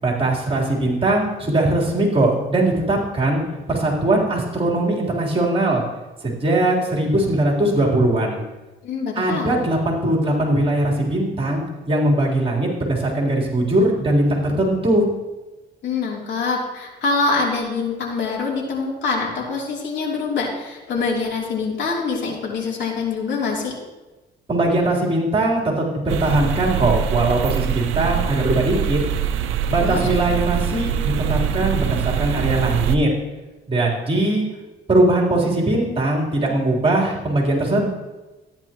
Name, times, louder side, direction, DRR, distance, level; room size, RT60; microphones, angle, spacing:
voice 1, 0.0-3.4 3.7-5.8 6.2-8.4 9.2-15.1 24.5-29.0 29.7-33.1 33.7-34.4 34.9-37.9, right 1 dB, 30° right, -3 dB, 3.7 m, -20 dB
voice 2, 8.8-9.6 15.8-23.7 29.8-30.1, left 4 dB, 65° left, -3 dB, 3.3 m, -24 dB
sound 1, 26.1-33.0, right 9 dB, 90° right, 0.6 m, -23 dB
13.5 x 10.5 x 3.1 m, 1.1 s
cardioid pair, 90°, 20 cm